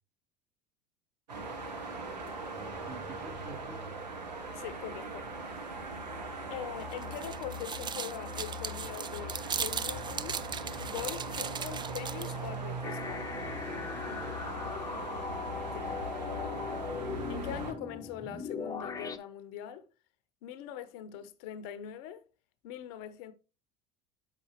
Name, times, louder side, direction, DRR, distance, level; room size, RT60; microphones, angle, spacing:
sound 1, 1.3-17.7, right 2 dB, 90° right, 1.3 m, -40 dB
voice 1, 2.5-3.9 13.3-14.3, right 3 dB, 45° right, 2.5 m, -49 dB
voice 2, 4.5-5.3 6.5-10.4 10.8-13.3 15.7-15.9 17.3-19.9 20.4-22.2 22.6-23.3, left 10 dB, 65° left, 0.7 m, -42 dB
sound 2, 6.8-12.5, right 7 dB, 20° right, 0.4 m, -38 dB
sound 3, 12.8-19.2, left 5 dB, 20° left, 0.7 m, -39 dB
7.7 x 5.8 x 3.0 m
hypercardioid pair, 75°, 21 cm